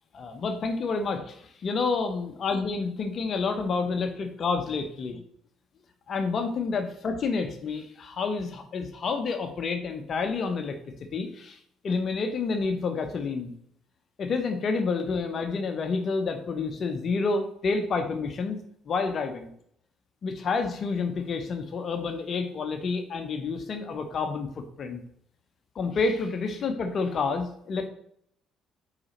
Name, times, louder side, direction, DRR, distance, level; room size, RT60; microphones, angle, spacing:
voice 1, 0.1-5.2 6.1-10.8 11.1-11.6 11.8-13.5 14.2-18.6 18.9-19.4 20.2-24.5 24.8-25.0 25.7-27.9, left 4 dB, 50° left, 6 dB, 0.8 m, -29 dB
4.9 x 4.9 x 4.2 m, 0.69 s
hypercardioid pair, 60°, 0 cm